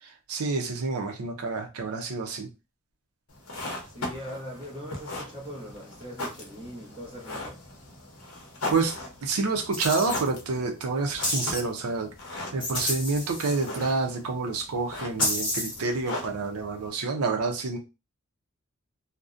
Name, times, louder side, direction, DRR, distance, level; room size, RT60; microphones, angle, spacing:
voice 1, 0.3-2.5 8.7-8.9 9.2-12.1 12.5-17.8, right 4 dB, 85° right, 0.5 m, -28 dB
sound 1, 3.3-16.9, left 2 dB, 75° left, 0.7 m, -39 dB
voice 2, 3.9-7.7, equal, 25° right, 0.8 m, -41 dB
sound 2, 9.7-10.2 11.2-11.6 12.6-13.8 15.2-15.8, left 1 dB, 25° left, 0.9 m, -30 dB
2.5 x 2.1 x 2.4 m
head